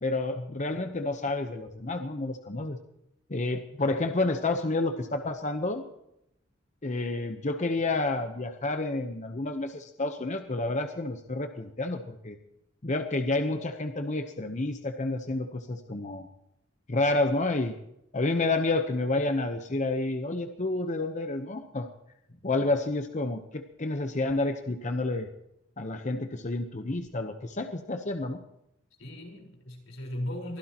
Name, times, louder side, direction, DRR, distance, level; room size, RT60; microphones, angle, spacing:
voice 1, 0.0-2.8 3.3-5.8 6.8-12.4 12.8-16.3 16.9-17.8 18.1-21.9 22.4-25.3 25.8-28.4, left 2 dB, 40° left, 6 dB, 0.9 m, -29 dB
voice 2, 22.3-22.7 29.0-30.6, left 1 dB, 90° left, -1 dB, 4.6 m, -38 dB
23.5 x 16.0 x 3.0 m, 0.82 s
head